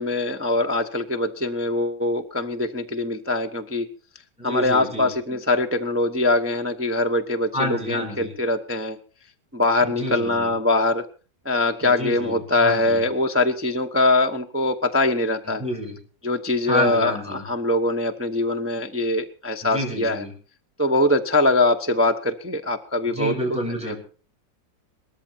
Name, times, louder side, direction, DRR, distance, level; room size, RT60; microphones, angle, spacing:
voice 1, 0.0-3.9 4.4-9.0 9.5-11.1 11.4-15.6 16.2-20.2 20.8-23.6 23.8-23.9, left 2 dB, 20° right, 5 dB, 0.3 m, -22 dB
voice 2, 4.4-5.1 7.5-8.3 9.8-10.5 11.8-13.0 15.5-16.0 16.7-17.4 19.6-20.3 23.1-24.0, equal, 5° right, 0 dB, 5.0 m, -29 dB
19.0 x 14.0 x 4.4 m, 0.39 s
omnidirectional pair, 2.0 m